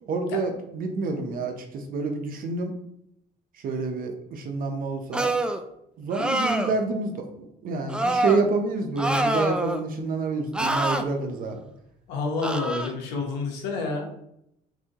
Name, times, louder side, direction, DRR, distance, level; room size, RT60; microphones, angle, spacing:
voice 1, 0.0-2.7 3.6-5.3 6.0-11.6, right 3 dB, 55° right, 4 dB, 0.8 m, -28 dB
sound 1, 5.1-5.6 6.1-6.8 7.9-8.4 9.0-9.8 10.5-11.0 12.4-12.9, right 1 dB, 5° right, 0.3 m, -25 dB
voice 2, 12.1-14.1, left 3 dB, 90° left, 1 dB, 1.1 m, -28 dB
6.0 x 2.7 x 3.0 m, 0.77 s
cardioid pair, 110°, 17 cm